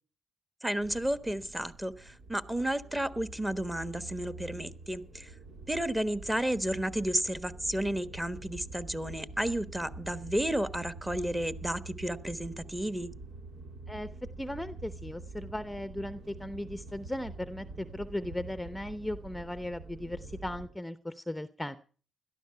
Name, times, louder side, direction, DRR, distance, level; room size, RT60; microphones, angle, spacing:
voice 1, 0.6-5.3 5.7-13.1, right 1 dB, 10° right, 12 dB, 1.2 m, -32 dB
sound 1, 0.8-20.7, right 3 dB, 80° right, 2.6 m, -46 dB
voice 2, 14.4-21.8, left 1 dB, 5° left, 11 dB, 0.8 m, -37 dB
17.5 x 12.5 x 5.7 m, 0.41 s
cardioid pair, 75°, 0 cm